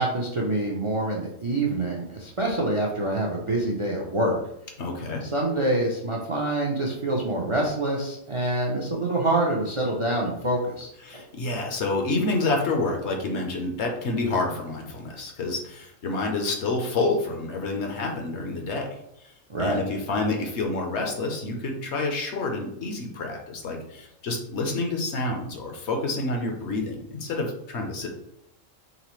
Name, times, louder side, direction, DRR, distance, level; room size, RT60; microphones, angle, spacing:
voice 1, 0.0-4.4 5.2-11.2 19.5-19.8, right 1 dB, 45° right, -2 dB, 0.4 m, -26 dB
voice 2, 4.8-5.2 11.0-19.0 19.2-19.3 19.6-28.2, left 2 dB, 65° left, 2 dB, 1.0 m, -28 dB
4.0 x 3.3 x 3.0 m, 0.78 s
omnidirectional pair, 1.3 m